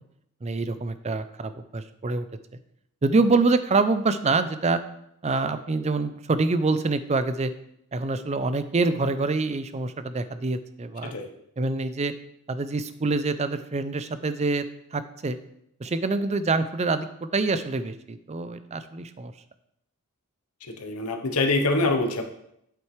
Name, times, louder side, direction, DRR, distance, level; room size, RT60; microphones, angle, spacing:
voice 1, 0.4-2.3 3.0-4.8 5.2-7.5 7.9-11.1 11.6-12.1 12.5-14.6 14.9-15.4 15.8-19.3, right 3 dB, 30° right, 11 dB, 0.5 m, -25 dB
voice 2, 20.6-22.2, left 2 dB, 85° left, 5 dB, 1.0 m, -25 dB
8.4 x 7.6 x 3.3 m, 0.77 s
head